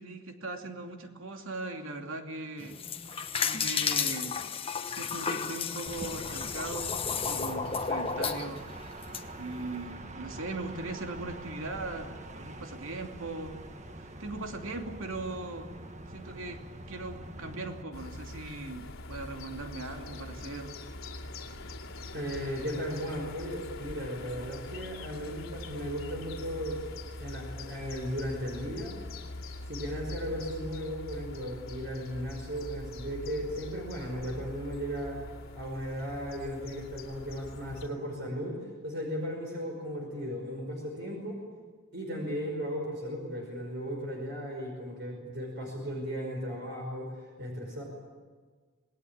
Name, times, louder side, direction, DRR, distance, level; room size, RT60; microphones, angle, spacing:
voice 1, 0.0-2.8 3.4-4.4 4.9-8.6 9.4-13.6 14.0-15.7 16.1-16.6 16.9-20.8, right 2 dB, 75° right, 3 dB, 2.8 m, -39 dB
sound 1, 2.6-9.2, left 6 dB, 25° left, 1.1 m, -32 dB
sound 2, 5.9-17.8, right 1 dB, 35° right, 1.5 m, -44 dB
sound 3, 17.9-37.9, left 2 dB, 80° left, 2.5 m, -43 dB
voice 2, 22.1-26.8 27.2-29.0 29.7-35.2 35.5-38.6 38.8-41.4 41.9-47.8, equal, 55° right, 0 dB, 5.4 m, -36 dB
27.0 x 20.0 x 8.8 m, 1.5 s
head